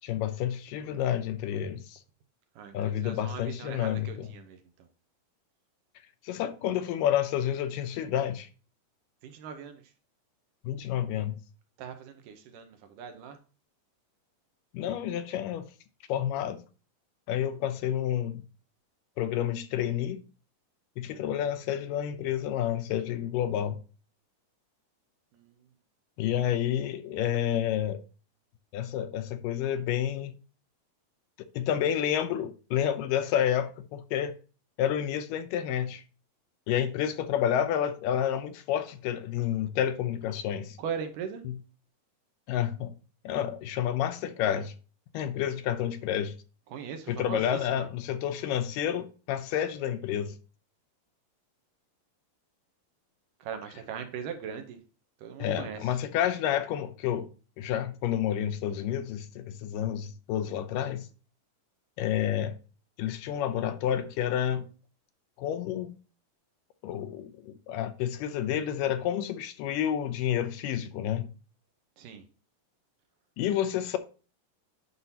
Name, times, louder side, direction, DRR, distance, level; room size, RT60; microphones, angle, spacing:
voice 1, 0.0-2.0 2.7-4.3 6.2-8.5 10.6-11.4 14.7-15.7 16.1-16.6 17.3-18.4 19.2-20.2 21.0-23.8 26.2-28.0 28.7-30.3 31.6-34.3 34.8-36.0 36.7-40.8 41.4-41.6 42.5-43.0 43.3-44.7 45.1-46.3 47.1-50.4 55.4-57.3 57.6-61.1 62.0-62.6 63.0-64.7 65.4-65.9 66.8-71.3 73.4-74.0, left 10 dB, 80° left, 2.1 m, -29 dB
voice 2, 2.6-4.6 9.2-9.8 11.8-12.7 13.0-13.4 40.8-41.4 46.7-47.9 53.4-54.8 55.2-55.8 72.0-72.2, right 7 dB, 75° right, 2.3 m, -39 dB
9.7 x 5.3 x 2.8 m
omnidirectional pair, 4.0 m